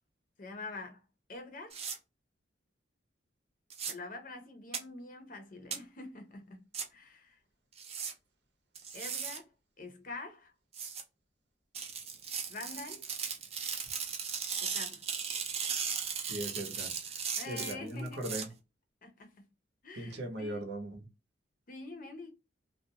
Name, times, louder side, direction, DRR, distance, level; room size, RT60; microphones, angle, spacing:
voice 1, 0.4-1.0 1.3-1.8 3.9-6.6 6.9-7.4 8.9-9.5 9.8-10.5 12.5-13.0 14.6-15.0 17.4-18.2 19.0-19.3 19.8-20.7 21.7-22.3, left 3 dB, 50° left, 0.6 m, -45 dB
sound 1, 1.7-2.0 3.7-3.9 4.7-4.8 5.7-5.8 6.7-6.8 7.8-8.1 8.8-9.4 10.7-11.0 11.7-18.4, right 6 dB, 35° right, 0.4 m, -37 dB
voice 2, 16.3-17.1 17.5-18.5 19.9-21.0, right 1 dB, 65° right, 0.8 m, -39 dB
2.4 x 2.2 x 2.8 m
head